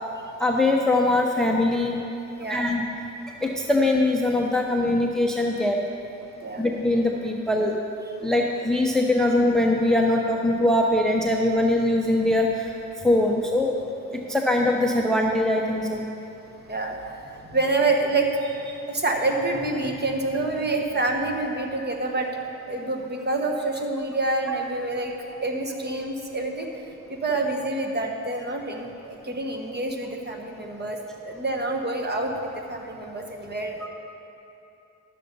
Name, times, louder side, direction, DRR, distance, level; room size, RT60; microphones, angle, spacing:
voice 1, 0.4-2.0 2.5-2.8 3.4-5.8 6.6-7.8 8.2-12.7 13.0-13.7 14.3-16.0, left 1 dB, ahead, 1 dB, 0.8 m, -22 dB
voice 2, 2.3-2.7 6.4-6.7 16.7-22.3 22.7-25.1 25.4-26.7 27.1-33.9, right 2 dB, 30° right, 2 dB, 1.4 m, -27 dB
12.0 x 6.9 x 5.4 m, 2.8 s
cardioid pair, 80°, 33 cm